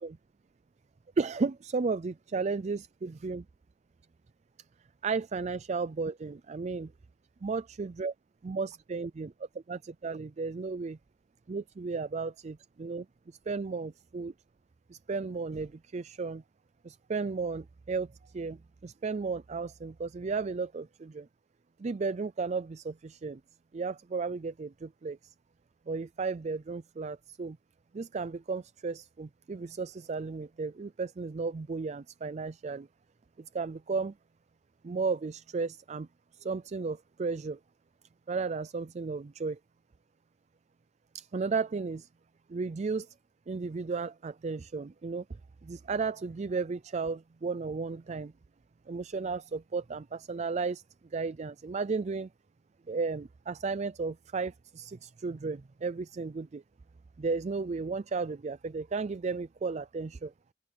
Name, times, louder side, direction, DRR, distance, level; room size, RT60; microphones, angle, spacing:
voice 1, 1.2-3.4 5.0-6.9 7.4-8.1 8.4-9.3 9.7-11.0 11.5-12.5 12.8-14.3 14.9-16.4 16.8-21.3 21.8-23.4 23.7-25.3 25.9-27.6 27.9-32.9 33.4-34.1 34.8-36.1 36.3-37.6 38.3-39.6 41.1-42.1 42.5-43.1 43.5-45.2 45.6-48.3 48.9-50.8 51.1-52.3 52.9-56.6 57.2-60.3, right 4 dB, 40° right, 0.4 m, -34 dB
open air
head